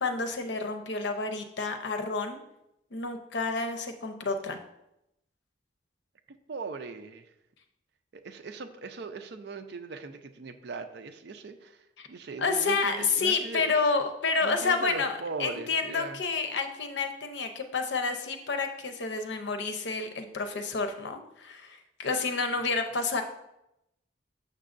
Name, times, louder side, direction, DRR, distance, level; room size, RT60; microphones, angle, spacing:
voice 1, 0.0-2.4 2.9-4.6 12.0-12.1 12.4-23.2, left 4 dB, 85° left, 6 dB, 0.7 m, -29 dB
voice 2, 6.3-7.3 8.1-13.9 14.4-16.2, right 4 dB, 65° right, 7 dB, 0.5 m, -40 dB
6.5 x 6.1 x 2.5 m, 0.85 s
head